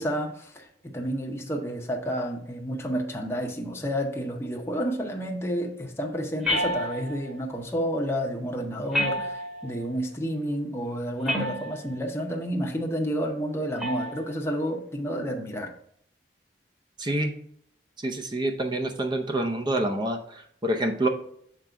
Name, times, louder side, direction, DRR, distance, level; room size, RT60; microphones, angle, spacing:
voice 1, 0.0-15.7, equal, 15° left, 1 dB, 0.7 m, -30 dB
sound 1, 6.4-7.3 8.9-9.8 11.3-11.9 13.8-14.2, left 1 dB, 5° right, 1.1 m, -29 dB
voice 2, 17.0-17.3 18.0-21.1, right 1 dB, 25° right, 4 dB, 0.6 m, -27 dB
7.1 x 3.8 x 4.5 m, 0.68 s
head